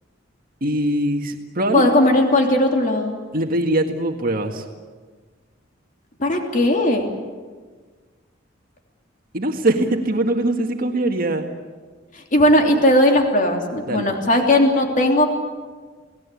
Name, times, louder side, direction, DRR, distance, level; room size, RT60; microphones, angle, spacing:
voice 1, 0.6-1.9 3.3-4.6 9.3-11.5 13.9-14.1, right 1 dB, 50° right, 3 dB, 1.9 m, -22 dB
voice 2, 1.7-3.1 6.2-7.1 12.1-15.3, left 1 dB, 45° left, 2 dB, 3.1 m, -17 dB
29.0 x 19.0 x 8.5 m, 1.5 s
head